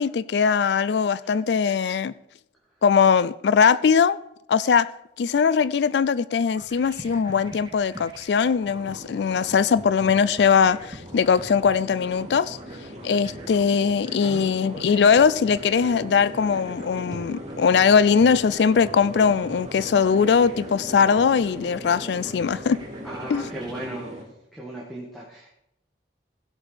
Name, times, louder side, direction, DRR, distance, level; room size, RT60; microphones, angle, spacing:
voice 1, 0.0-2.1 2.8-4.2 4.5-4.9 5.2-12.6 13.0-22.8 23.3-23.5, left 6 dB, 80° left, 0.4 m, -20 dB
sound 1, 6.4-23.9, right 1 dB, 25° right, 1.7 m, -44 dB
sound 2, 8.7-24.2, equal, 40° right, 2.4 m, -39 dB
voice 2, 14.2-14.9 23.0-24.2 24.5-25.5, right 1 dB, ahead, 1.6 m, -37 dB
16.0 x 6.3 x 5.0 m
head